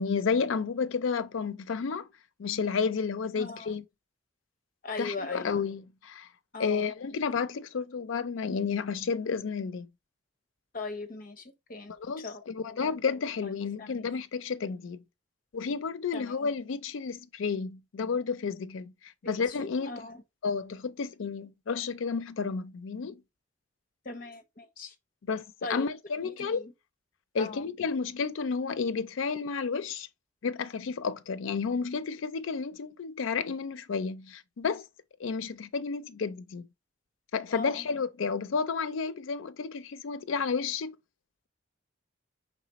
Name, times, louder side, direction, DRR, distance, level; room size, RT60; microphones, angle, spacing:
voice 1, 0.0-2.1 2.4-3.8 5.0-6.3 6.6-9.9 12.0-15.0 15.5-18.9 19.2-20.0 20.4-23.2 25.3-26.6 27.3-30.1 30.4-34.8 35.2-36.7 37.3-41.0, left 5 dB, 85° left, 0.4 m, -31 dB
voice 2, 3.3-3.7 4.8-5.6 6.5-6.9 10.7-11.9 12.2-12.4 12.7-12.9 13.4-13.5 13.8-14.1 16.1-16.5 19.2-20.2 24.0-24.9 25.6-25.9 26.2-26.7 27.4-27.7 37.5-37.9, left 3 dB, 45° left, 0.7 m, -40 dB
4.9 x 3.6 x 2.9 m
head